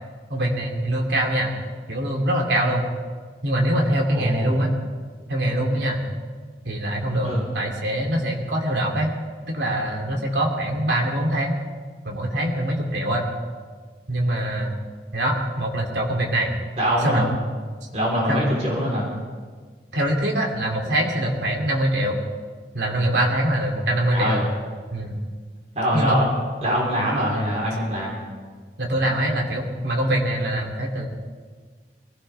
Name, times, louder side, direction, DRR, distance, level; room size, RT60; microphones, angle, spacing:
voice 1, 0.3-1.5 1.9-2.9 3.4-4.7 5.3-6.0 6.6-7.3 7.5-9.1 9.5-11.5 12.0-13.3 14.1-14.7 15.1-16.5 17.0-17.3 18.3-18.4 19.9-22.2 22.7-24.4 24.9-25.1 25.9-26.2 28.8-31.1, right 1 dB, 80° right, 0 dB, 2.7 m, -23 dB
voice 2, 4.1-4.6 7.2-7.5 16.8-17.3 17.9-19.1 24.1-24.4 25.7-26.3 26.6-28.2, equal, 40° right, -3 dB, 3.6 m, -23 dB
22.0 x 16.5 x 3.4 m, 1.5 s
head